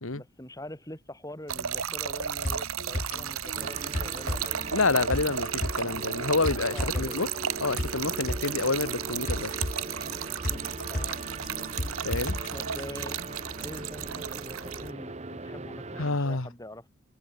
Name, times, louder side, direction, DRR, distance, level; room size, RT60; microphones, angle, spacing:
voice 1, 0.1-4.6 6.7-7.2 10.5-11.2 12.5-13.3 13.6-16.8, left 1 dB, 15° left, 6.0 m, -44 dB
Trickle dribble / Fill (with liquid), 1.5-14.9, right 8 dB, 90° right, 1.9 m, -34 dB
sound 1, 2.4-12.5 12.8-12.9, left 1 dB, 40° left, 1.7 m, -35 dB
sound 2, 3.5-16.1, right 2 dB, 30° right, 1.2 m, -40 dB
voice 2, 4.7-7.3 7.6-9.5 12.0-12.4 16.0-16.5, left 3 dB, 75° left, 1.7 m, -28 dB
open air
head